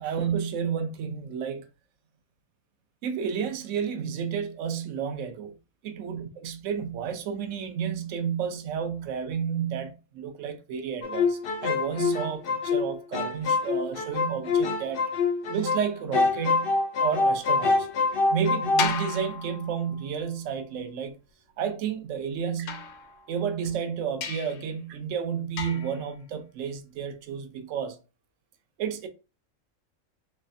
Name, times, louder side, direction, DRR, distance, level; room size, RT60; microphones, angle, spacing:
voice 1, 0.0-1.7 3.0-5.5 5.8-15.1 15.5-17.9 18.3-21.2 21.6-22.9 23.3-28.0 28.8-29.1, right 7 dB, 65° right, 0.9 m, -31 dB
sound 1, 11.0-15.9 16.1-18.9, left 4 dB, 65° left, 0.5 m, -25 dB
sound 2, 18.8-20.2 22.7-23.6 24.2-24.7 25.6-26.1, left 6 dB, 80° left, 1.1 m, -34 dB
3.3 x 3.1 x 2.5 m
omnidirectional pair, 1.5 m